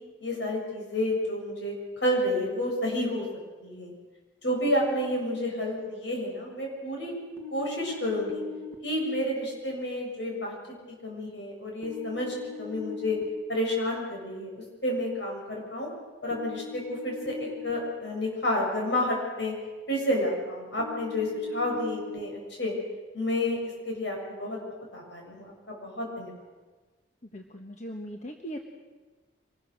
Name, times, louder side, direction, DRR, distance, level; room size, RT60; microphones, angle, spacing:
voice 1, 0.2-1.8 2.0-3.2 3.6-3.9 4.4-7.2 7.5-8.4 8.8-10.5 10.9-13.2 13.5-15.9 16.2-19.5 19.9-22.7 23.1-24.6 24.9-26.3, left 1 dB, 70° left, -1 dB, 7.3 m, -30 dB
sound 1, 7.4-8.7 11.8-13.2 16.3-17.7 20.8-22.2, left 6 dB, 15° left, 2.1 m, -40 dB
voice 2, 27.3-28.6, equal, 40° left, 3 dB, 1.3 m, -39 dB
25.0 x 20.0 x 6.5 m, 1.3 s
head